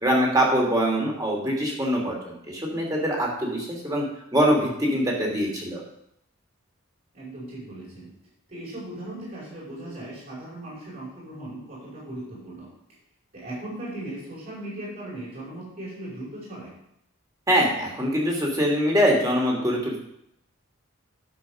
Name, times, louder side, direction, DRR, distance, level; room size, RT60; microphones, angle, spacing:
voice 1, 0.0-4.0 4.3-5.8 17.5-20.0, equal, 15° right, -2 dB, 2.8 m, -23 dB
voice 2, 7.1-8.1 8.5-12.7 13.3-16.7, right 1 dB, 45° right, -7 dB, 5.1 m, -38 dB
11.0 x 6.9 x 6.3 m, 0.77 s
head